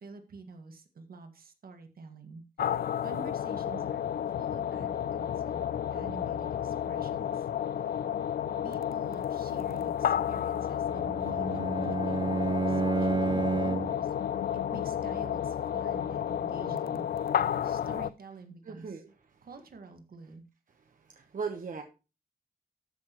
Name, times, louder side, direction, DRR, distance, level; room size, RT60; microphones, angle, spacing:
voice 1, 0.0-2.4 3.0-4.1 4.3-5.6 5.9-8.0 8.6-12.4 12.6-14.1 14.5-17.1 17.6-19.0 19.4-20.4, right 4 dB, 80° right, 6 dB, 1.7 m, -48 dB
sound 1, 2.6-18.1, left 9 dB, 85° left, 0.4 m, -31 dB
Bowed string instrument, 10.9-14.1, right 4 dB, 30° right, 0.4 m, -30 dB
voice 2, 18.7-19.1 21.1-21.8, right 5 dB, 60° right, 4 dB, 1.1 m, -37 dB
13.5 x 6.0 x 3.0 m, 0.30 s
wide cardioid pair, 160°, 15 cm